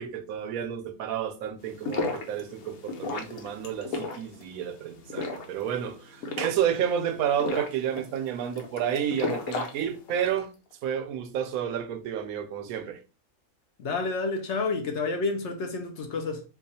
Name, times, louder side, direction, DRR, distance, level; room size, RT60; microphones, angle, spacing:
voice 1, 0.0-10.5 10.8-13.0, right 9 dB, 85° right, 1.0 m, -30 dB
sound 1, 1.6-10.4, left 3 dB, 90° left, 1.2 m, -35 dB
voice 2, 13.8-16.4, left 3 dB, 60° left, 0.9 m, -29 dB
4.6 x 2.4 x 2.7 m
omnidirectional pair, 1.5 m